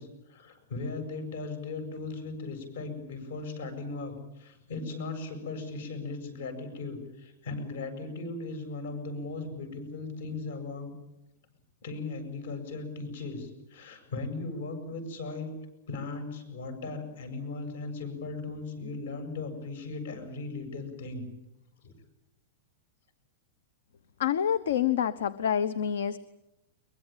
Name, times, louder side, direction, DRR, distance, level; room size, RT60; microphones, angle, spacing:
voice 1, 0.0-10.9 11.8-15.5 15.9-21.3 21.8-21.9, left 3 dB, 70° left, 8 dB, 7.7 m, -37 dB
voice 2, 24.2-26.2, left 9 dB, 85° left, 16 dB, 1.0 m, -27 dB
22.5 x 22.5 x 9.0 m, 0.90 s
supercardioid pair, 175°, 0 cm